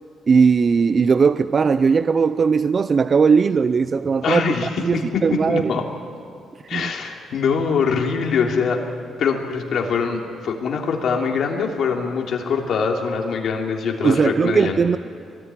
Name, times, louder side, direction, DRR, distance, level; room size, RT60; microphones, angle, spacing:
voice 1, 0.3-4.4 4.8-5.7 6.7-6.9 14.0-15.0, right 5 dB, 40° right, 13 dB, 0.5 m, -18 dB
voice 2, 4.2-5.9 6.7-8.8 9.2-14.8, left 5 dB, 65° left, 1 dB, 3.1 m, -23 dB
23.5 x 19.5 x 9.9 m, 2.3 s
cardioid pair, 90°, 0 cm